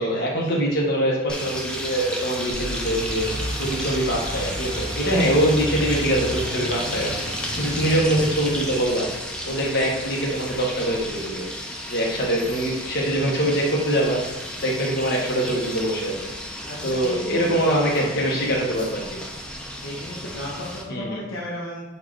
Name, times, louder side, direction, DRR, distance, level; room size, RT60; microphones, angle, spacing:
voice 1, 0.0-3.3 3.6-9.1 9.4-11.4 11.9-16.3 16.8-19.0 20.9-21.2, right 1 dB, 50° left, -3 dB, 0.9 m, -23 dB
sound 1, 1.3-20.8, equal, 5° left, 0.3 m, -33 dB
sound 2, 2.5-8.8, right 1 dB, 25° right, 0.7 m, -33 dB
voice 2, 16.6-18.2 19.8-21.9, left 1 dB, 70° left, -4 dB, 0.7 m, -33 dB
4.3 x 2.4 x 4.5 m, 1.0 s
head